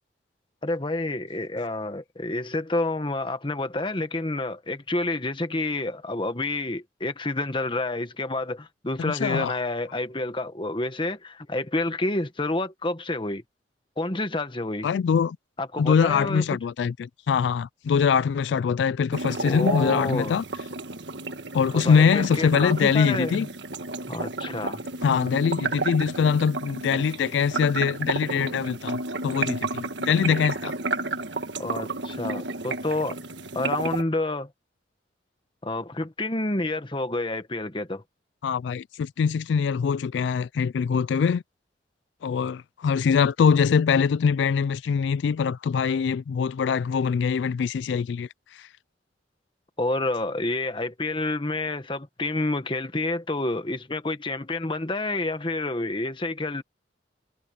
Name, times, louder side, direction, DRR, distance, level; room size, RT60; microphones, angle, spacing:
voice 1, 0.6-13.4 14.0-14.9 15.6-16.4 19.4-20.4 21.7-23.5 24.1-24.8 31.6-33.2 33.5-34.5 35.6-38.0 49.8-56.6, left 2 dB, 30° left, 1.3 m, -29 dB
voice 2, 9.1-9.6 14.8-15.4 15.8-20.4 21.5-23.5 25.0-30.7 38.4-41.4 42.2-48.3 48.6-48.7, left 6 dB, 85° left, 0.3 m, -23 dB
sound 1, 19.1-34.0, right 3 dB, 85° right, 1.5 m, -32 dB
head